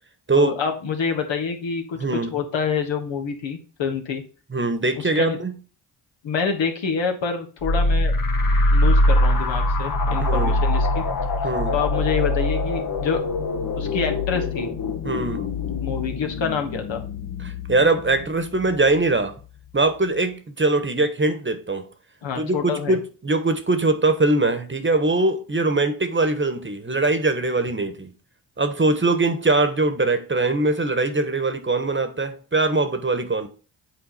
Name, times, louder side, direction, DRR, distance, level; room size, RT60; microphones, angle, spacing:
voice 1, 0.4-4.2 5.0-5.4 6.2-8.1 8.7-11.0 11.7-13.2 13.8-14.7 15.8-17.0 22.2-23.0, left 6 dB, 65° left, 1.5 m, -27 dB
voice 2, 2.0-2.3 4.5-5.5 10.2-10.6 11.4-11.8 15.0-15.4 17.4-19.4 19.7-21.9 22.4-28.1 28.6-33.5, right 2 dB, 25° right, 1.3 m, -22 dB
sound 1, 7.6-19.0, left 1 dB, 45° left, 1.2 m, -23 dB
7.5 x 4.3 x 4.2 m
supercardioid pair, 45°, 48 cm